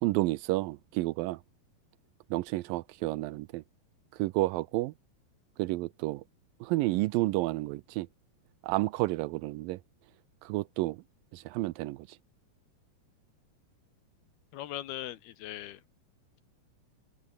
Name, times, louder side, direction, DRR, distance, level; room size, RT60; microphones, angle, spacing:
voice 1, 0.0-1.4 2.3-3.6 4.2-4.9 5.6-6.2 6.6-8.1 8.6-9.8 10.4-11.0 11.3-12.1, right 20 dB, 80° right, 2.1 m, -30 dB
voice 2, 14.5-15.8, left 13 dB, 85° left, 3.4 m, -39 dB
omnidirectional pair, 4.4 m